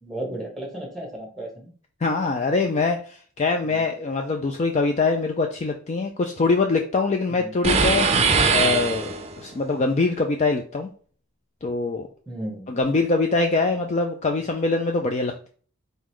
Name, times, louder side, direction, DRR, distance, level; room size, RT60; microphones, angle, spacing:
voice 1, 0.0-1.7 7.4-7.5 12.3-12.7, right 1 dB, ahead, -1 dB, 1.2 m, -34 dB
voice 2, 2.0-10.9 11.6-12.1 12.7-15.5, left 3 dB, 30° left, 4 dB, 0.4 m, -23 dB
sound 1, 7.6-9.5, right 4 dB, 30° right, 0.6 m, -21 dB
4.0 x 3.8 x 3.1 m, 0.43 s
head